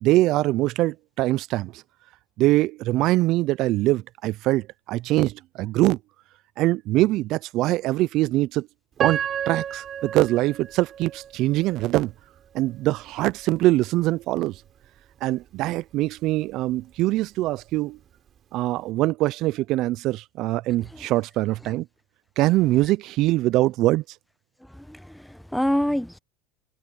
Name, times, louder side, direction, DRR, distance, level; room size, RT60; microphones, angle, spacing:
voice 1, 0.0-1.8 2.4-6.0 6.6-8.7 9.0-12.1 12.5-14.6 15.2-18.0 18.5-21.9 22.4-24.0, right 17 dB, 55° right, 0.4 m, -23 dB
Piano, 9.0-12.0 12.6-12.7 13.3-13.6, right 9 dB, 40° right, 4.8 m, -31 dB
voice 2, 24.7-26.2, equal, ahead, 0.9 m, -26 dB
supercardioid pair, 105°, 0 cm